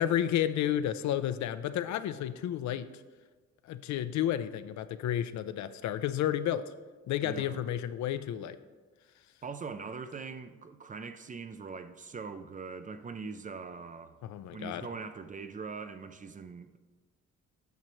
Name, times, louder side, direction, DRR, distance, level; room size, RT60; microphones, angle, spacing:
voice 1, 0.0-2.9 3.7-6.6 7.1-8.6 14.2-14.9, left 11 dB, 70° left, 0.5 m, -31 dB
voice 2, 7.2-7.6 9.4-14.2 14.5-16.8, right 5 dB, 25° right, 0.4 m, -42 dB
9.2 x 5.8 x 3.1 m
cardioid pair, 90°, 30 cm